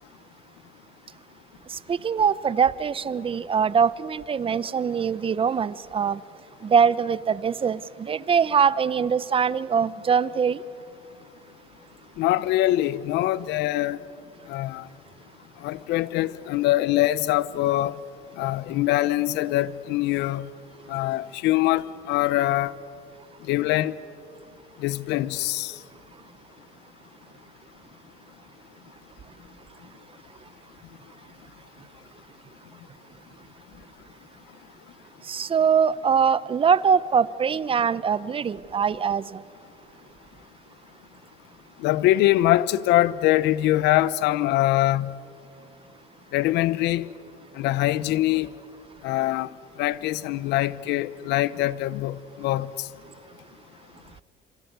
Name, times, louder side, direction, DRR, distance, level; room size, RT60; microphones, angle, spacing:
voice 1, 1.7-6.2 6.6-10.6 35.3-39.4, right 6 dB, 30° right, 0.8 m, -23 dB
voice 2, 12.2-14.0 14.5-14.9 15.6-17.9 18.4-20.5 20.9-22.7 23.5-23.9 24.8-25.7 41.8-45.2 46.3-47.1 47.6-48.5 49.0-49.5 49.8-52.9, left 15 dB, 85° left, 0.8 m, -23 dB
26.5 x 26.5 x 8.2 m
cardioid pair, 110°, 17 cm